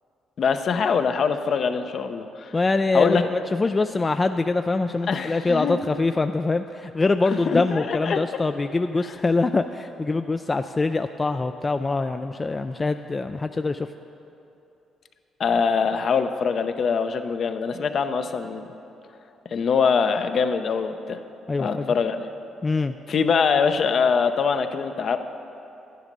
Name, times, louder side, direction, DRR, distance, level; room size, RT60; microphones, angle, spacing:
voice 1, 0.4-2.5 2.9-3.2 5.1-5.8 7.3-8.4 15.4-18.7 19.5-21.2 21.6-22.3 23.1-25.2, left 6 dB, 55° left, 8 dB, 0.7 m, -23 dB
voice 2, 2.5-13.9 21.5-21.9 22.6-23.0, left 3 dB, 25° left, 8 dB, 0.3 m, -24 dB
11.0 x 10.5 x 5.3 m, 2.9 s
cardioid pair, 90°, 0 cm